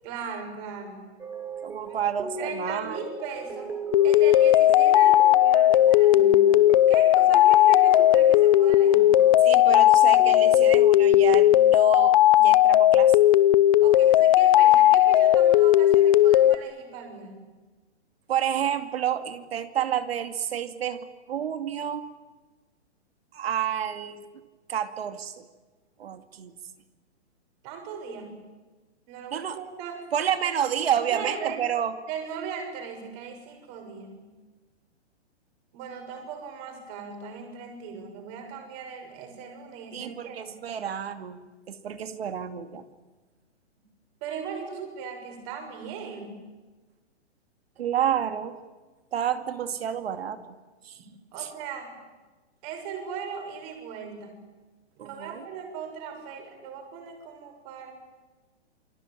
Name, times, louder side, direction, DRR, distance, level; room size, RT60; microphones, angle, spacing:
voice 1, 0.0-1.0 1.9-2.0 2.4-3.7 4.0-6.6 6.9-9.2 13.8-17.5 27.6-28.3 29.1-30.1 30.4-30.5 31.0-31.6 32.1-34.2 35.7-40.6 44.2-46.4 51.3-51.9 52.6-54.4 55.0-57.9, right 6 dB, 30° right, 4 dB, 6.7 m, -38 dB
sound 1, 1.2-10.6, right 4 dB, 5° right, 2.0 m, -37 dB
voice 2, 1.6-3.0 9.4-13.2 18.3-21.0 21.3-22.1 23.3-24.2 24.7-25.4 26.0-26.5 29.3-29.6 30.1-31.9 39.9-41.4 41.7-42.8 47.8-48.6 49.1-50.6 50.8-51.0 51.4-51.5 55.0-55.4, right 9 dB, 60° right, 9 dB, 2.5 m, -29 dB
sound 2, 3.9-16.6, left 13 dB, 30° left, 0.8 m, -17 dB
28.0 x 21.5 x 9.1 m, 1.2 s
hypercardioid pair, 160°, 35 cm